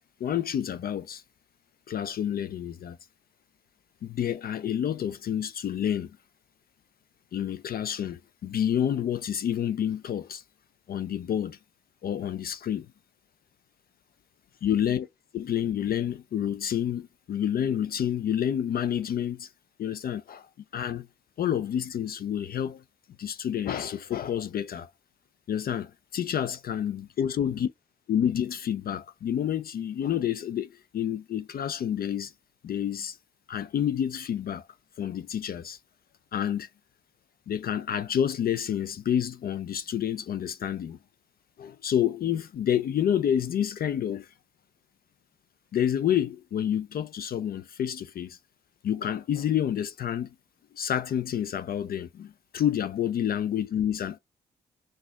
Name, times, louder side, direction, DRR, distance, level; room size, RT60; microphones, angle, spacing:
voice 1, 0.2-1.2 1.9-3.0 4.0-6.2 7.3-10.4 10.9-11.6 12.0-12.9 14.6-15.1 15.3-19.5 19.8-20.5 20.7-21.1 21.4-22.8 23.2-24.9 25.5-27.7 28.1-32.3 32.6-33.2 33.5-34.7 35.0-35.8 36.3-36.7 37.5-41.0 41.6-44.3 45.7-48.4 48.8-50.3 50.7-54.2, left 9 dB, 50° left, 0.4 m, -29 dB
4.0 x 2.4 x 4.5 m
hypercardioid pair, 40°, 19 cm